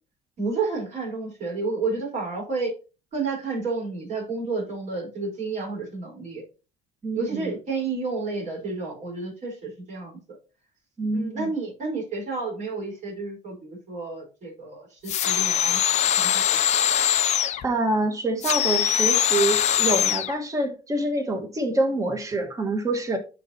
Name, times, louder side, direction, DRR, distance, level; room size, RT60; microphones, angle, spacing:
voice 1, 0.4-2.7 3.1-6.4 7.1-10.4 11.1-16.4, right 3 dB, 45° right, 4.2 m, -31 dB
voice 2, 7.0-7.5 11.0-11.5 17.6-23.2, right 2 dB, 20° right, 1.5 m, -26 dB
sound 1, 15.1-17.7 18.4-20.3, left 10 dB, 45° left, 0.5 m, -22 dB
12.0 x 4.1 x 2.8 m
cardioid pair, 130°, 17 cm